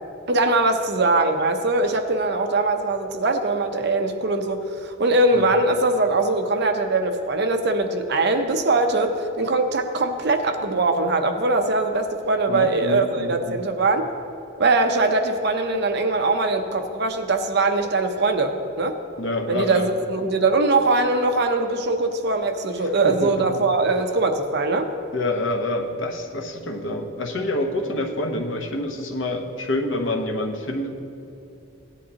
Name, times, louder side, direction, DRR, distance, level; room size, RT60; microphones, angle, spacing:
voice 1, 0.3-14.1 14.6-19.0 19.5-24.9, right 2 dB, 55° right, 6 dB, 0.7 m, -21 dB
voice 2, 12.5-13.6 19.2-19.9 23.0-23.5 25.1-31.0, left 1 dB, 60° left, 3 dB, 1.0 m, -27 dB
17.0 x 10.0 x 2.9 m, 2.7 s
head